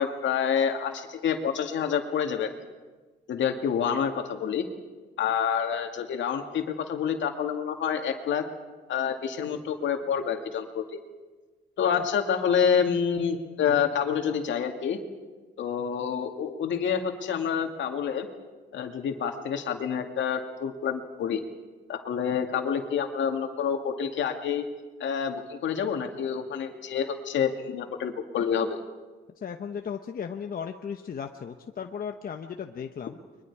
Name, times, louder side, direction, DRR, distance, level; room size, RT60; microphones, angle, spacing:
voice 1, 0.0-2.5 3.3-4.6 5.2-8.4 8.9-11.0 11.8-15.0 15.6-18.3 18.7-21.4 21.9-24.6 25.0-28.8, left 7 dB, 70° left, 4 dB, 2.2 m, -28 dB
voice 2, 29.4-33.2, left 7 dB, 45° left, 5 dB, 1.1 m, -36 dB
30.0 x 23.0 x 4.8 m, 1.3 s
cardioid pair, 90°, 20 cm